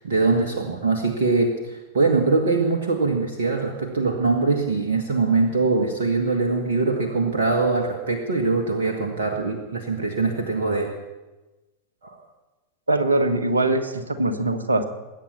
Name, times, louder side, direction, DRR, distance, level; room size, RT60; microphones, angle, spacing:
voice 1, 0.0-10.9 12.0-12.2, right 3 dB, 60° right, 2 dB, 1.9 m, -22 dB
voice 2, 12.9-14.9, right 2 dB, 80° right, 10 dB, 1.5 m, -22 dB
21.5 x 9.2 x 7.1 m, 1.1 s
figure-of-eight pair, 90°, 0 cm